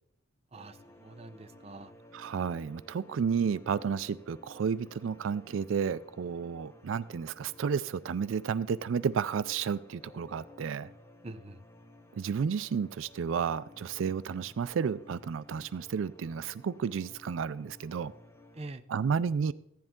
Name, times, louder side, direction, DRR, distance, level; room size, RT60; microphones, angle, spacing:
sound 1, 0.5-18.7, left 1 dB, 15° left, 0.9 m, -55 dB
voice 1, 0.5-1.9 11.2-11.6 18.5-18.8, right 2 dB, 30° right, 9 dB, 0.6 m, -45 dB
voice 2, 2.1-10.9 12.1-18.1 18.9-19.5, right 6 dB, 80° right, 17 dB, 0.4 m, -32 dB
15.0 x 10.5 x 3.6 m, 0.76 s
head